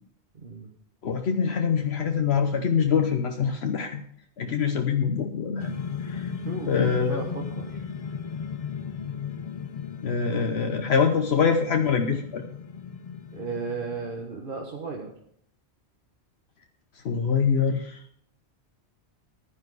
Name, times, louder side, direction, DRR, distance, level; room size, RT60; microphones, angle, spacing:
voice 1, 0.3-0.7 6.4-7.8 13.3-15.1, right 4 dB, 55° right, 1 dB, 1.4 m, -35 dB
voice 2, 1.0-4.0 4.4-5.8 6.0-6.3 6.7-7.3 10.0-12.4 17.0-18.0, left 6 dB, 75° left, 5 dB, 1.1 m, -24 dB
sound 1, 5.6-14.2, left 6 dB, 45° left, 0.6 m, -36 dB
12.0 x 9.8 x 4.8 m, 0.67 s
omnidirectional pair, 1.1 m